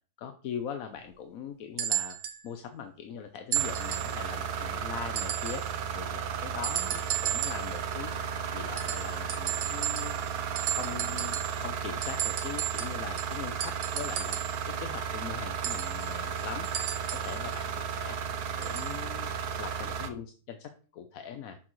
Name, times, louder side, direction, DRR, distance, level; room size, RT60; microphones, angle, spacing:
voice 1, 0.2-2.2 2.4-5.6 5.9-8.2 8.5-10.1 10.7-14.4 14.7-16.7 17.2-18.2 18.6-19.3 19.6-21.6, left 7 dB, 70° left, 7 dB, 1.1 m, -41 dB
sound 1, 1.8-2.4 3.5-4.2 5.2-5.7 6.6-7.7 8.8-10.3 10.6-11.6 12.0-14.6 15.6-17.4 18.6-19.0 19.9-20.0, right 11 dB, 60° right, 1.1 m, -34 dB
sound 2, 3.5-20.1, right 7 dB, 85° right, 1.3 m, -34 dB
7.6 x 6.3 x 3.1 m, 0.40 s
omnidirectional pair, 1.6 m